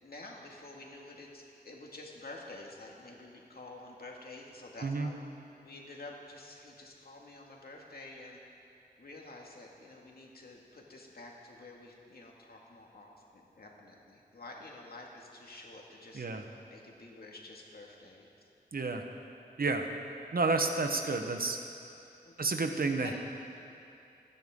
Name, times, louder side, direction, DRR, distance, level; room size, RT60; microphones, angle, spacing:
voice 1, 0.0-5.2 5.6-8.4 9.0-16.3 16.7-18.3 22.2-22.3 23.0-23.1, left 2 dB, 65° left, -1 dB, 2.2 m, -49 dB
voice 2, 18.7-19.0 19.6-19.9 20.3-21.6 22.4-23.1, right 3 dB, 60° right, 5 dB, 1.2 m, -30 dB
28.5 x 10.0 x 3.8 m, 2.7 s
wide cardioid pair, 80°, 17 cm